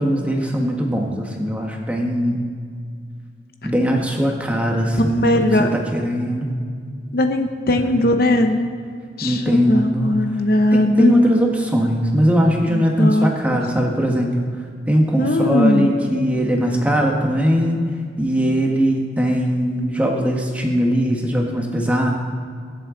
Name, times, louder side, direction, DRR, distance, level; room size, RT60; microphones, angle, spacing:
voice 1, 0.0-2.4 3.6-6.5 7.7-7.9 9.2-10.1 10.7-14.3 14.9-17.8 18.2-22.1, equal, 10° right, 0 dB, 1.4 m, -20 dB
voice 2, 5.0-5.7 7.1-8.6 9.2-11.1 12.7-13.6 15.2-15.9, left 1 dB, 55° left, 5 dB, 0.8 m, -19 dB
22.0 x 7.8 x 3.9 m, 2.1 s
head